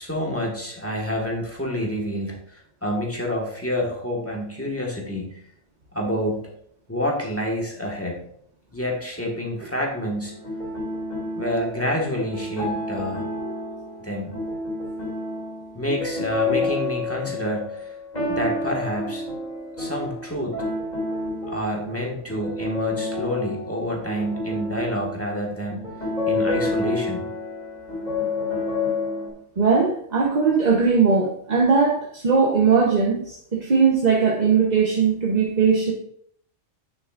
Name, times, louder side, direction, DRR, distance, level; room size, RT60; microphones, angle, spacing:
voice 1, 0.0-5.3 5.9-6.5 6.9-8.2 8.7-10.4 11.4-13.2 14.0-14.3 15.7-18.0 18.3-19.2 19.8-20.6 21.5-25.8 26.3-27.3, equal, 10° left, -1 dB, 1.6 m, -28 dB
sound 1, 10.3-29.3, left 2 dB, 35° left, 3.0 m, -29 dB
voice 2, 29.6-35.9, right 5 dB, 40° right, -1 dB, 1.0 m, -19 dB
9.1 x 7.1 x 2.5 m, 0.65 s
omnidirectional pair, 1.3 m